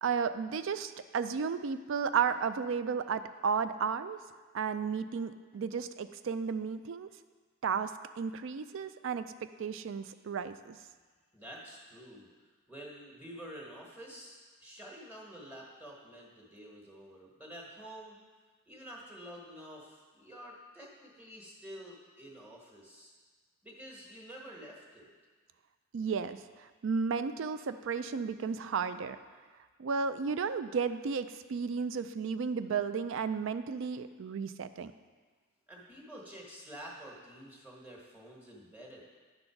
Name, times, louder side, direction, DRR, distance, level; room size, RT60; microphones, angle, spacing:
voice 1, 0.0-4.2 4.5-7.1 7.6-10.8 25.9-26.4 26.8-29.2 29.8-34.9, right 6 dB, 60° right, 12 dB, 0.4 m, -33 dB
voice 2, 11.3-12.3 12.7-18.2 18.7-23.1 23.6-25.1 35.7-39.0, equal, 5° right, -2 dB, 1.3 m, -49 dB
9.9 x 3.9 x 5.8 m, 1.4 s
head